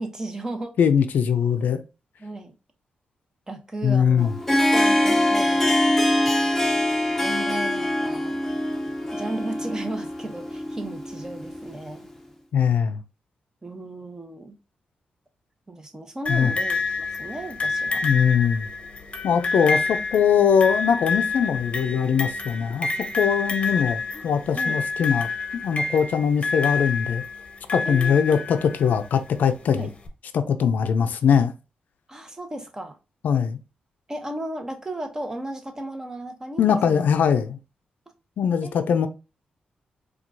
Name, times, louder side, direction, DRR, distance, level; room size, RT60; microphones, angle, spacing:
voice 1, 0.0-0.7 2.2-2.5 3.5-4.3 4.7-5.9 7.2-8.4 9.1-12.1 13.6-14.5 15.7-18.0 19.3-19.7 24.1-24.3 24.5-24.8 27.9-28.5 29.7-29.9 32.1-33.0 34.1-37.1 38.6-38.8, right 2 dB, 20° right, 0.9 m, -35 dB
voice 2, 0.8-1.8 3.8-4.3 12.5-13.0 16.3-16.5 18.0-18.7 19.2-22.9 23.1-27.2 27.7-29.9 30.3-31.5 33.2-33.6 36.6-37.6 38.4-39.1, left 7 dB, 75° left, 0.4 m, -21 dB
Harp, 4.2-11.9, left 1 dB, 10° left, 0.8 m, -23 dB
sound 1, 16.3-29.1 30.1-30.2, left 4 dB, 40° left, 0.8 m, -28 dB
4.4 x 2.3 x 2.6 m
cardioid pair, 75°, 3 cm